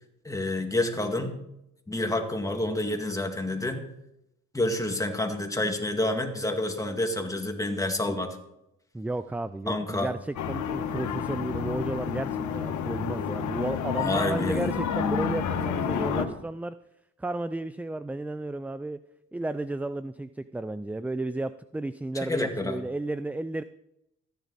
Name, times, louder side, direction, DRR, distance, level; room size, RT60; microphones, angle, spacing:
voice 1, 0.2-1.3 1.9-3.8 4.5-8.3 9.7-10.1 14.0-14.7 22.3-22.8, left 1 dB, 10° left, 3 dB, 2.0 m, -28 dB
voice 2, 8.9-16.8 17.2-19.0 19.3-23.6, right 2 dB, 5° right, 13 dB, 0.3 m, -33 dB
sound 1, 10.4-16.3, left 7 dB, 75° left, 1.4 m, -30 dB
14.0 x 10.5 x 4.1 m, 0.83 s
cardioid pair, 90°, 30 cm